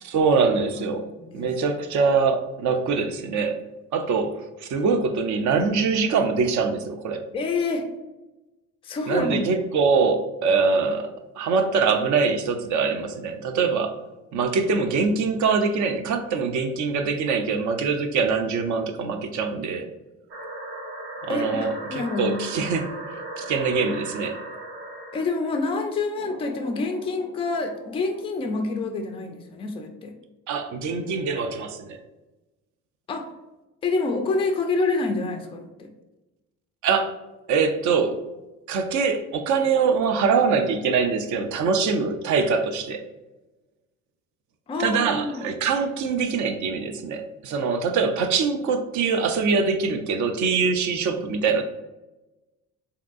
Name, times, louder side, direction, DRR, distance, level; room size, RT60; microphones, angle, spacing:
voice 1, 0.0-1.0 1.3-3.6 3.9-7.3 9.1-14.0 14.3-19.9 21.2-24.4 30.5-32.0 36.8-37.1 37.5-38.2 38.7-43.0 44.8-51.6, right 5 dB, 45° right, 7 dB, 0.5 m, -23 dB
voice 2, 7.3-7.9 8.8-9.4 21.3-22.4 25.1-30.1 33.1-33.3 33.8-35.9 44.7-45.4, left 3 dB, 15° left, 5 dB, 0.3 m, -27 dB
sound 1, 20.3-25.3 26.2-28.6, right 1 dB, 60° right, 0.9 m, -38 dB
3.4 x 2.7 x 2.3 m, 1.0 s
figure-of-eight pair, 50°, 45 cm